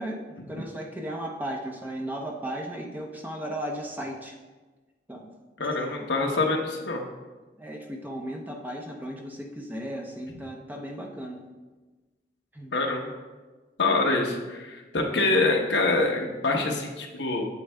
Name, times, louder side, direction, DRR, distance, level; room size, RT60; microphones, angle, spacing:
voice 1, 0.0-4.4 5.1-5.3 5.6-6.0 7.6-11.4 12.5-12.7, right 1 dB, 10° right, 1 dB, 0.7 m, -35 dB
voice 2, 5.6-7.0 12.7-13.1 13.8-17.5, left 3 dB, 85° left, 1 dB, 0.9 m, -25 dB
8.3 x 7.9 x 2.2 m, 1.3 s
head